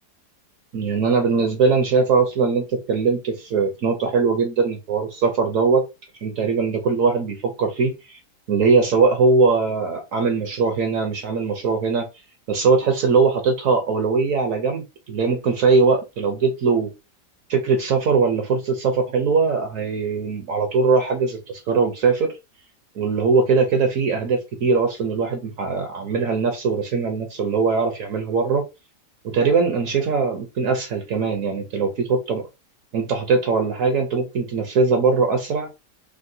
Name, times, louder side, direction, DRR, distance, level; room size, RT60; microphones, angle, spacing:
voice 1, 0.7-5.9 6.2-8.2 8.5-12.1 12.5-16.9 17.5-22.4 23.0-28.7 29.2-32.5 32.9-35.7, right 4 dB, 65° right, 0.9 m, -21 dB
3.5 x 2.2 x 2.6 m
omnidirectional pair, 1.8 m